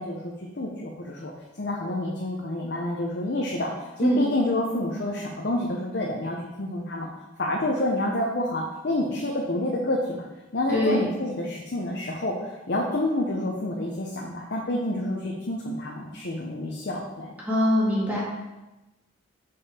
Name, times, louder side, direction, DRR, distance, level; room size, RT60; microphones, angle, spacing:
voice 1, 0.0-1.3 1.6-7.1 7.4-10.2 10.5-17.3, left 1 dB, 55° left, -2 dB, 0.7 m, -28 dB
voice 2, 10.7-11.1 17.4-18.2, equal, 10° right, -6 dB, 1.7 m, -22 dB
5.4 x 5.1 x 4.3 m, 1.0 s
head